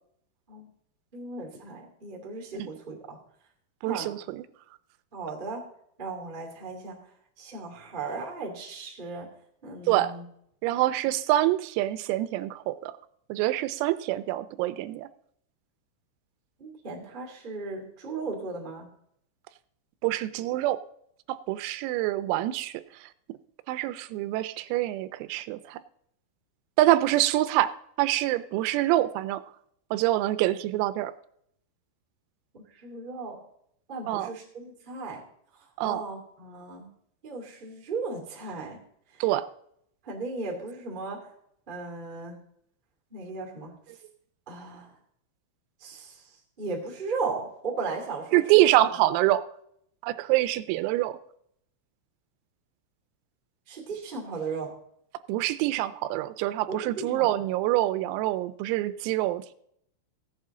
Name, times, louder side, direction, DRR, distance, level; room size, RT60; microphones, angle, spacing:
voice 1, 1.1-3.2 3.8-4.1 5.1-5.6 6.0-7.0 7.4-9.3 9.6-10.2 16.6-18.9 32.5-33.4 33.9-35.2 35.5-36.9 37.2-38.8 39.1-39.2 40.0-41.3 41.7-42.4 43.1-43.8 44.4-45.0 45.8-48.6 48.9-49.0 53.7-54.8 56.7-57.5, right 3 dB, 30° right, -1 dB, 0.9 m, -36 dB
voice 2, 3.8-4.4 9.9-10.1 10.6-12.9 13.3-15.1 20.0-20.8 21.3-22.8 23.7-25.8 26.8-27.7 28.0-29.4 29.9-31.1 34.1-34.3 35.8-36.0 39.2-39.5 48.3-49.4 50.0-51.2 55.3-59.5, right 15 dB, 90° right, 14 dB, 3.4 m, -25 dB
16.0 x 8.5 x 3.8 m, 0.70 s
omnidirectional pair, 6.0 m